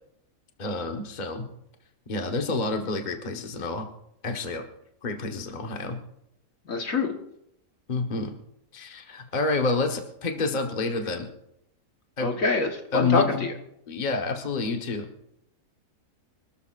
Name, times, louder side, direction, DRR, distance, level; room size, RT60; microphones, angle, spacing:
voice 1, 0.6-1.4 2.1-3.9 4.2-4.6 5.0-6.0 7.9-8.3 8.7-11.3 12.2-12.4 12.9-13.4 13.9-15.1, left 3 dB, 30° left, 4 dB, 1.3 m, -28 dB
voice 2, 6.7-7.1 12.2-13.5, left 4 dB, 60° left, 3 dB, 1.7 m, -25 dB
25.5 x 13.0 x 2.5 m, 0.81 s
omnidirectional pair, 1.6 m